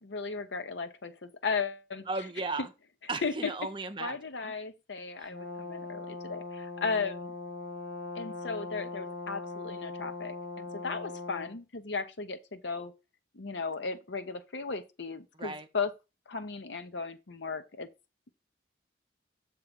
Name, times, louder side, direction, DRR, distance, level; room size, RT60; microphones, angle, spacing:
voice 1, 0.0-2.0 3.2-3.3 4.0-7.3 8.1-12.9 13.3-15.9 16.3-17.9, left 4 dB, 75° left, 0.8 m, -36 dB
voice 2, 2.1-2.7 3.1-4.2 4.4-4.5 5.2-5.3 15.3-15.7, right 3 dB, 25° right, 0.7 m, -36 dB
Brass instrument, 5.3-11.6, left 3 dB, 50° left, 1.2 m, -40 dB
7.0 x 3.8 x 5.2 m
head